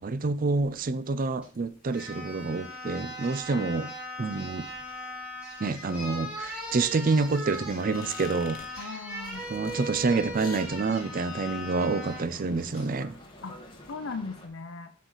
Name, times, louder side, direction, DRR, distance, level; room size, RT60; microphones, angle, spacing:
voice 1, 0.0-3.9 4.2-4.7 5.6-8.6 9.5-13.2, right 3 dB, 45° right, 0.5 m, -28 dB
sound 1, 0.5-13.9, left 4 dB, 45° left, 1.5 m, -53 dB
sound 2, 1.4-1.5 1.9-12.3 12.7-12.9, equal, 5° right, 3.0 m, -39 dB
voice 2, 8.8-9.4 13.4-13.6 13.9-14.9, left 4 dB, 70° left, 0.6 m, -38 dB
Boat Water vehicle, 9.3-14.5, left 1 dB, 25° left, 1.5 m, -49 dB
8.0 x 6.5 x 3.9 m
head